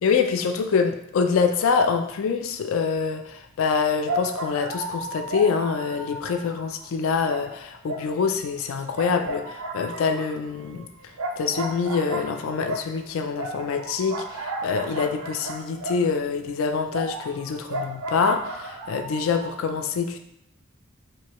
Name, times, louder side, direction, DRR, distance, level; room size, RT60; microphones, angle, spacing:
voice 1, 0.0-10.9 11.4-20.2, left 5 dB, 65° left, 6 dB, 0.3 m, -25 dB
sound 1, 3.4-3.5 4.0-6.9 7.2-8.6 8.9-16.3 16.9-19.5, right 1 dB, 85° right, 0.4 m, -34 dB
4.6 x 2.2 x 3.0 m, 0.77 s
head